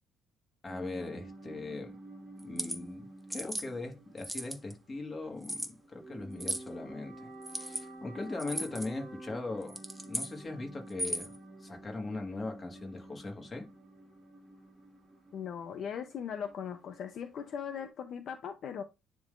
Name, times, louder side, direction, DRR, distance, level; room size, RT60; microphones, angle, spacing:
voice 1, 0.6-2.0 2.4-9.8 10.1-13.7, left 2 dB, 20° left, 1.6 m, -40 dB
sound 1, 0.7-17.9, right 2 dB, 20° right, 1.8 m, -50 dB
sound 2, 2.4-2.8 3.3-3.7 4.2-4.7 5.4-5.7 6.4-6.7 7.4-7.8 8.4-8.9 9.6-10.3 10.9-11.4, right 1 dB, 5° right, 0.8 m, -36 dB
voice 2, 15.3-18.8, left 8 dB, 50° left, 0.6 m, -39 dB
10.0 x 3.7 x 2.5 m
cardioid pair, 145°, 0 cm